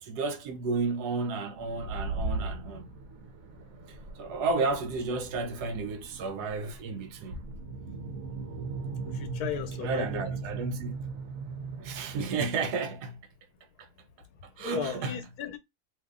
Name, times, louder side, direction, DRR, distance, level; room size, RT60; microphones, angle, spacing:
voice 1, 0.0-2.9 3.9-7.5 9.8-10.9 11.8-13.2 13.8-13.9 14.4-15.2, right 4 dB, 90° right, 1.2 m, -32 dB
sound 1, 1.6-12.3, right 3 dB, 65° right, 1.0 m, -38 dB
voice 2, 9.0-10.2 14.6-15.6, left 8 dB, 80° left, 1.2 m, -35 dB
2.7 x 2.7 x 3.6 m
omnidirectional pair, 1.6 m